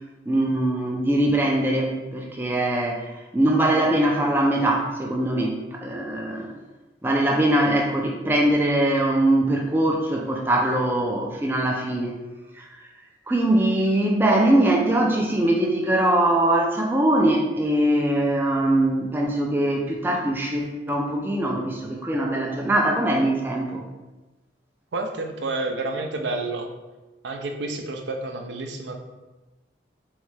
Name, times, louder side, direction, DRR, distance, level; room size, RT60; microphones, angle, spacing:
voice 1, 0.3-6.5 7.0-12.2 12.5-12.7 13.3-23.8, right 1 dB, 10° right, 0 dB, 0.3 m, -22 dB
voice 2, 24.9-26.7 27.2-28.9, right 2 dB, 75° right, 4 dB, 0.5 m, -29 dB
3.7 x 3.1 x 3.2 m, 1.1 s
head